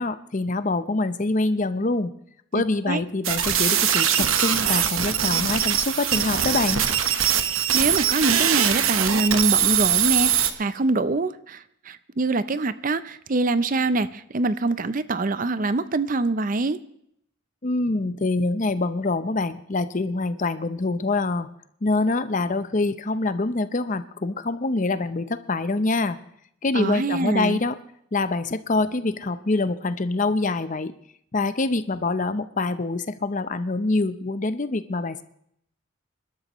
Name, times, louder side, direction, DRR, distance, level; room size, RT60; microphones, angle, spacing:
voice 1, 0.0-2.1 2.5-6.8 17.6-21.5 21.8-26.2 26.6-27.8 28.1-30.9 31.3-35.2, left 2 dB, 35° left, 12 dB, 0.7 m, -25 dB
voice 2, 2.5-3.0 7.7-16.8 26.7-27.6, right 3 dB, 40° right, 14 dB, 0.5 m, -24 dB
sound 1, 3.2-10.5, right 9 dB, 75° right, 1.1 m, -22 dB
26.0 x 12.5 x 3.1 m, 0.71 s
head